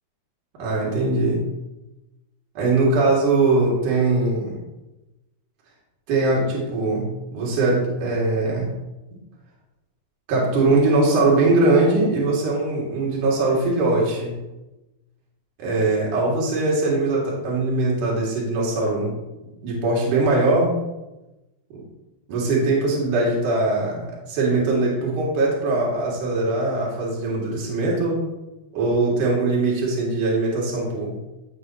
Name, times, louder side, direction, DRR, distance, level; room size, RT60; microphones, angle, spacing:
voice 1, 0.6-1.4 2.6-4.6 6.1-8.7 10.3-14.4 15.6-19.1 19.6-20.7 22.3-28.3 28.7-31.2, right 2 dB, 45° right, -4 dB, 3.6 m, -21 dB
13.0 x 7.8 x 3.1 m, 1.0 s
omnidirectional pair, 5.7 m